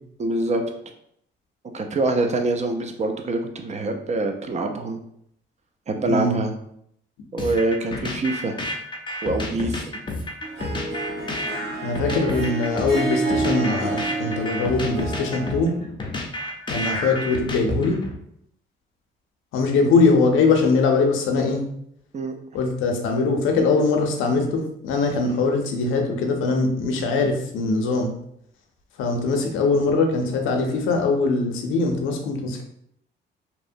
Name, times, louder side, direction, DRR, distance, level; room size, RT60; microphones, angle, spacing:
voice 1, 0.2-0.6 1.7-5.0 5.9-6.5 7.3-8.6 9.2-9.9 22.1-22.4 29.2-29.5, right 2 dB, 35° right, 5 dB, 0.4 m, -25 dB
sound 1, 7.4-18.2, left 1 dB, 25° left, 0.5 m, -30 dB
Harp, 10.4-15.7, right 3 dB, 75° right, 0.7 m, -29 dB
voice 2, 11.8-15.7 16.7-18.0 19.5-21.6 22.5-28.1 29.0-32.6, left 3 dB, 85° left, 3 dB, 0.5 m, -22 dB
2.8 x 2.1 x 2.5 m, 0.71 s
cardioid pair, 90°, 20 cm